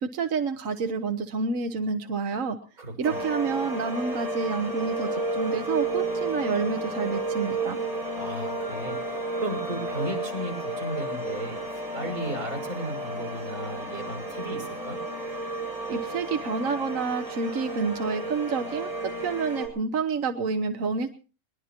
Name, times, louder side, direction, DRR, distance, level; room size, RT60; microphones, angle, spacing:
voice 1, 0.0-2.6 3.0-7.8 15.9-21.1, right 4 dB, 65° right, 7 dB, 1.4 m, -29 dB
voice 2, 2.8-3.2 8.1-15.0, right 1 dB, 90° right, 5 dB, 6.7 m, -35 dB
sound 1, 3.0-19.7, right 2 dB, 25° right, 7.4 m, -32 dB
21.5 x 21.0 x 2.9 m, 0.37 s
omnidirectional pair, 1.5 m